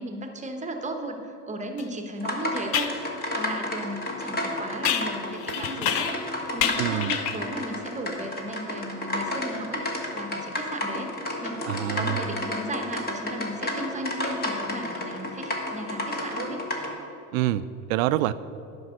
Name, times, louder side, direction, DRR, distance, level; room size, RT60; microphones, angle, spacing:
voice 1, 0.0-6.1 6.5-9.8 10.1-11.1 11.4-16.6, right 1 dB, 15° right, 5 dB, 1.0 m, -35 dB
sound 1, 1.8-1.9 2.7-3.0 4.8-6.3 6.6-7.5, left 10 dB, 45° left, 0.7 m, -28 dB
sound 2, 2.2-16.9, left 1 dB, 20° left, 1.4 m, -32 dB
voice 2, 6.8-7.2 11.7-12.2 17.3-18.3, right 14 dB, 65° right, 15 dB, 0.5 m, -26 dB
9.5 x 5.4 x 6.2 m, 2.7 s
hypercardioid pair, 80°, 45 cm